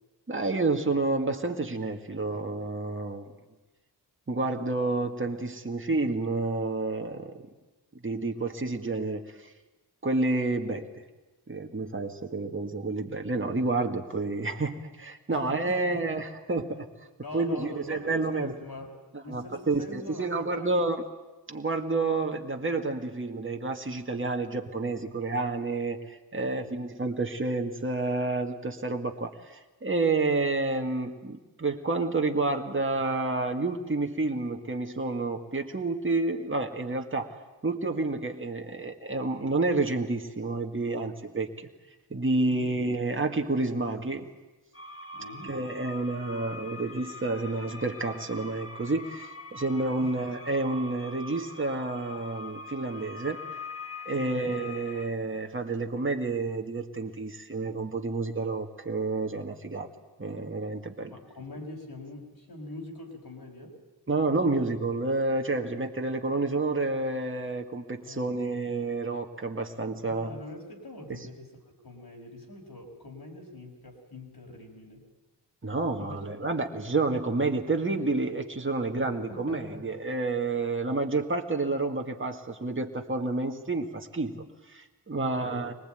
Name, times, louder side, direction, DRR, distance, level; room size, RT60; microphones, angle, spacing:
voice 1, 0.3-3.3 4.3-7.3 8.0-9.5 10.0-11.0 11.5-16.9 17.3-18.5 19.3-21.1 21.5-37.4 37.6-41.7 42.1-44.3 45.4-53.4 54.1-59.9 60.2-61.1 64.1-70.3 71.1-71.2 75.6-85.7, right 3 dB, 30° right, 3 dB, 2.0 m, -29 dB
voice 2, 15.3-16.2 17.2-18.9 19.2-20.7 26.3-26.7 42.5-42.7 45.1-45.6 50.0-50.1 54.1-54.6 61.1-63.8 68.0-68.4 70.0-75.0 76.0-76.2 79.0-79.9 85.1-85.7, left 1 dB, 60° left, 0 dB, 5.8 m, -43 dB
sound 1, 44.7-55.1, left 3 dB, 30° left, 2.0 m, -43 dB
24.0 x 19.5 x 9.2 m, 1.1 s
cardioid pair, 60°, 42 cm